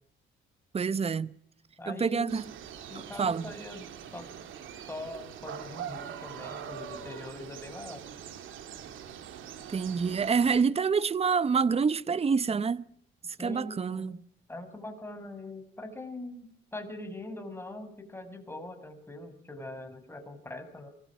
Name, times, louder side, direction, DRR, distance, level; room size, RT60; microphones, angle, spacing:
voice 1, 0.7-1.3 1.9-2.4 2.9-3.5 9.7-12.9 13.4-14.2, right 5 dB, 30° right, 0.9 m, -27 dB
voice 2, 1.8-2.5 2.9-3.9 4.1-4.3 4.9-8.0 13.4-14.2 14.5-20.9, left 1 dB, 10° left, 6.0 m, -42 dB
sound 1, 2.3-10.6, right 8 dB, 80° right, 2.7 m, -43 dB
24.0 x 20.5 x 6.2 m
cardioid pair, 90°, 20 cm